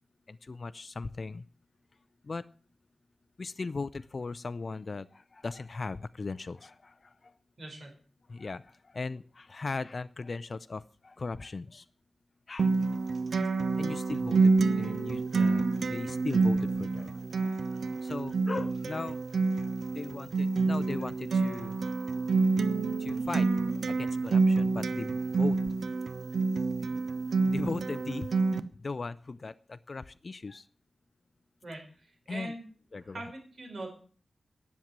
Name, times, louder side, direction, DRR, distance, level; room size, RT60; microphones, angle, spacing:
voice 1, 0.3-1.5 2.2-2.5 3.4-7.3 8.3-11.9 12.5-12.8 13.3-17.1 17.4-17.6 18.0-21.8 22.7-23.5 23.9-25.6 27.4-28.3 28.8-30.7 32.3-32.5 32.9-33.2, left 3 dB, 40° left, 13 dB, 0.5 m, -38 dB
voice 2, 7.6-7.9 31.6-32.6 33.1-33.9, right 1 dB, 55° right, 1 dB, 4.7 m, -42 dB
Acoustic guitar, 12.6-28.6, right 4 dB, 75° right, 0.8 m, -28 dB
10.5 x 7.3 x 9.4 m, 0.43 s
wide cardioid pair, 115°, 0 cm